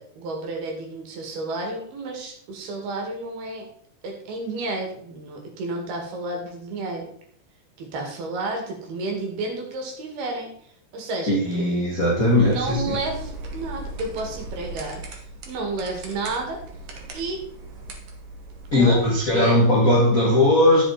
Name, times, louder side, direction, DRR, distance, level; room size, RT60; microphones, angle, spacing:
voice 1, 0.0-3.7 4.0-7.1 7.8-10.5 10.9-11.7 12.3-15.0 15.5-16.6 17.1-17.4 18.8-19.6, right 2 dB, 75° right, 2 dB, 4.2 m, -31 dB
voice 2, 11.3-13.0 18.7-20.8, left 1 dB, 35° left, -4 dB, 1.4 m, -19 dB
sound 1, 12.1-19.4, right 2 dB, 55° right, 1.8 m, -39 dB
10.5 x 7.6 x 4.3 m, 0.62 s
omnidirectional pair, 4.6 m